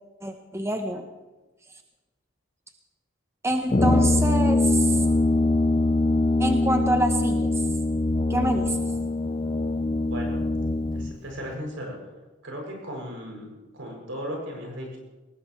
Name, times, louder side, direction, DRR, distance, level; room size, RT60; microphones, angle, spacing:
voice 1, 0.2-1.0 3.4-5.0 6.4-7.6 8.3-8.8, right 1 dB, 15° right, 5 dB, 0.9 m, -26 dB
Brass instrument, 3.7-11.2, left 2 dB, 25° left, 0.4 m, -23 dB
voice 2, 10.1-10.4 10.9-12.0 12.4-13.5 13.7-15.0, equal, 80° right, -1 dB, 7.3 m, -36 dB
20.5 x 18.0 x 3.3 m, 1.1 s
head